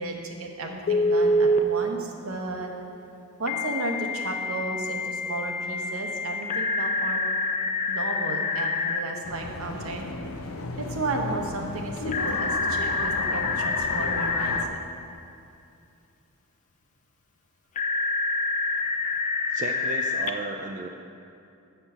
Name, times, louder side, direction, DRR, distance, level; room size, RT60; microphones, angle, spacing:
voice 1, 0.0-2.7 3.4-7.3 7.9-10.1 10.8-14.8, right 2 dB, 75° right, 2 dB, 0.9 m, -33 dB
Telephone, 0.9-1.6 3.5-9.0 12.1-14.6 17.8-20.3, left 2 dB, 35° left, 0.3 m, -26 dB
sound 1, 9.2-14.7, left 3 dB, 85° left, 0.5 m, -34 dB
voice 2, 19.5-20.9, right 3 dB, 35° right, 2 dB, 0.4 m, -34 dB
7.4 x 4.4 x 6.7 m, 2.6 s
head